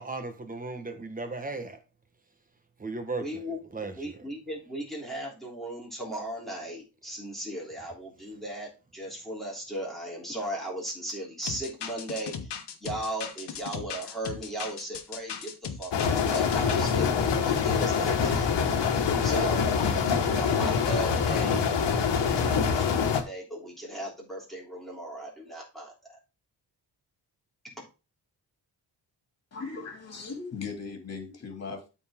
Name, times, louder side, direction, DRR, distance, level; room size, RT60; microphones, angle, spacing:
voice 1, 0.0-1.8 2.8-3.4 3.7-4.1, right 3 dB, 20° right, 1.3 m, -36 dB
voice 2, 3.2-3.6 3.9-18.5 19.2-19.7 20.2-21.7 22.2-25.9, right 1 dB, ahead, 3.3 m, -37 dB
sound 1, 11.5-16.9, left 7 dB, 70° left, 1.3 m, -38 dB
sound 2, 15.9-23.2, left 6 dB, 85° left, 1.5 m, -25 dB
voice 3, 29.5-31.9, left 4 dB, 40° left, 2.5 m, -38 dB
13.0 x 4.4 x 3.7 m
wide cardioid pair, 165°, 41 cm